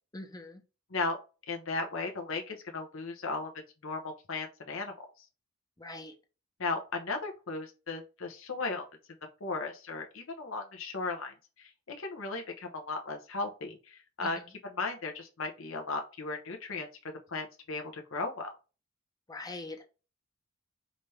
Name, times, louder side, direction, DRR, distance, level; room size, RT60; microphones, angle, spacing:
voice 1, 0.1-0.6 5.8-6.1 14.2-14.3 19.3-19.8, left 2 dB, 20° left, 5 dB, 0.7 m, -42 dB
voice 2, 1.5-3.5 3.8-5.1 6.6-8.8 9.4-16.9 17.3-18.5, left 3 dB, 80° left, 4 dB, 1.0 m, -36 dB
5.2 x 2.8 x 3.3 m, 0.31 s
head